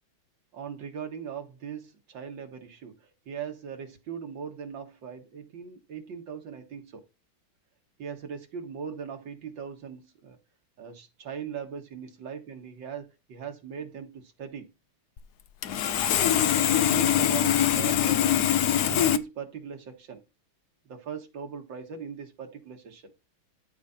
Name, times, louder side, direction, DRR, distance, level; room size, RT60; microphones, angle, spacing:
voice 1, 0.5-7.0 8.0-10.4 10.8-14.7 16.7-18.4 18.7-20.2 20.9-23.1, right 7 dB, 65° right, 2.2 m, -39 dB
Sawing, 15.2-15.3 15.6-19.2, left 11 dB, 65° left, 1.1 m, -23 dB
12.5 x 4.9 x 4.3 m
omnidirectional pair, 2.2 m